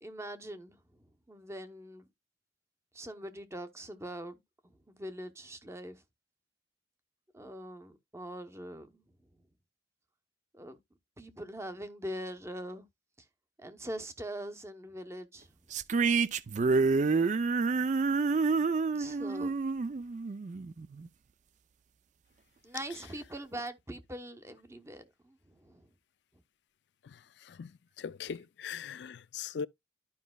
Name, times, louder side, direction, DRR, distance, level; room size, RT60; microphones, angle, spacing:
voice 1, 0.0-2.1 2.9-6.0 7.3-9.3 10.5-10.8 11.2-12.9 13.2-13.3 13.6-15.6 18.9-19.5 22.6-25.9, right 1 dB, 15° right, 0.8 m, -43 dB
sound 1, 15.7-21.1, right 4 dB, 40° right, 0.4 m, -28 dB
voice 2, 27.0-29.7, left 7 dB, 65° left, 0.4 m, -41 dB
12.0 x 5.2 x 2.3 m
head